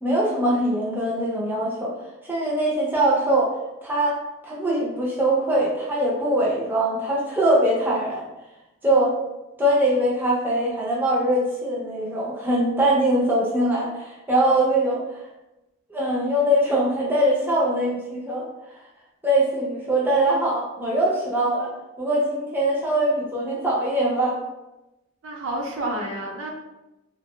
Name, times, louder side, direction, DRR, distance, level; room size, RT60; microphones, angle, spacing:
voice 1, 0.0-2.0 2.2-3.5 3.8-4.2 4.4-8.2 8.8-9.2 9.6-15.2 15.9-18.5 19.2-21.7 22.0-24.4, right 1 dB, 10° right, -5 dB, 0.4 m, -22 dB
voice 2, 25.2-26.5, right 1 dB, 65° right, 0 dB, 0.5 m, -29 dB
2.5 x 2.1 x 2.9 m, 0.98 s
head